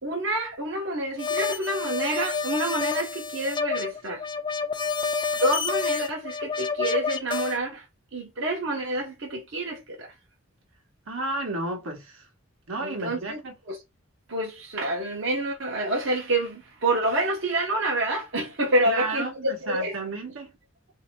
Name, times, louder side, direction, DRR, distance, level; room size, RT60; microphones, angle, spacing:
voice 1, 0.0-4.3 5.3-7.8 8.1-10.1 12.8-13.4 13.7-13.8 14.3-20.0, right 1 dB, 60° right, 0.9 m, -28 dB
sound 1, 1.2-7.6, left 5 dB, 25° left, 0.5 m, -29 dB
voice 2, 11.1-12.3 12.7-13.5 18.9-20.5, right 2 dB, 80° right, 1.1 m, -32 dB
3.1 x 2.7 x 4.3 m
head